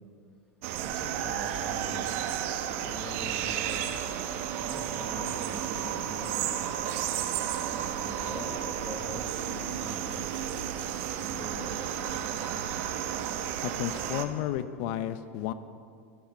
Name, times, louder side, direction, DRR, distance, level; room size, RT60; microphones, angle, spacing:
sound 1, 0.6-14.2, right 9 dB, 65° right, 1.4 m, -32 dB
voice 1, 0.8-2.2 2.7-4.0 4.6-6.6 7.7-10.1 11.2-12.0, left 1 dB, 10° left, -2 dB, 4.5 m, -43 dB
voice 2, 13.6-15.5, left 12 dB, 60° left, 13 dB, 0.7 m, -32 dB
28.0 x 10.5 x 4.4 m, 2.4 s
hypercardioid pair, 105°, 8 cm